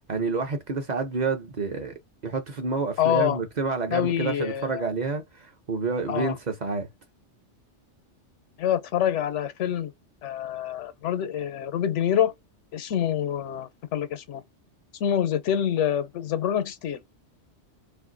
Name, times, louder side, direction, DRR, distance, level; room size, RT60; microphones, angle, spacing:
voice 1, 0.1-1.9 2.2-6.9, right 4 dB, 45° right, 0.6 m, -29 dB
voice 2, 3.0-3.4 3.9-4.8 6.1-6.3 8.6-9.9 10.2-12.3 12.7-14.4 15.0-17.0, left 10 dB, 85° left, 0.9 m, -26 dB
2.6 x 2.5 x 3.7 m
omnidirectional pair, 1.2 m